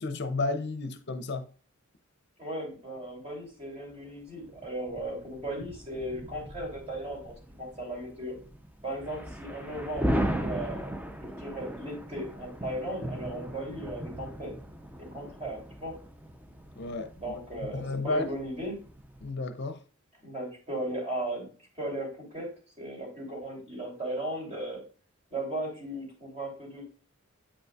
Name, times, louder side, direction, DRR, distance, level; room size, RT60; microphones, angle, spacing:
voice 1, 0.0-1.5 16.8-18.4 19.2-19.8, left 3 dB, 55° left, 0.6 m, -32 dB
voice 2, 2.4-8.3 8.8-14.5 15.0-16.0 17.2-18.8 20.2-21.5 21.8-22.5 22.8-24.8 25.3-26.9, right 1 dB, 30° right, 3.1 m, -37 dB
sound 1, 3.1-3.2 4.3-19.3, equal, 10° right, 0.5 m, -38 dB
8.5 x 5.2 x 2.3 m
head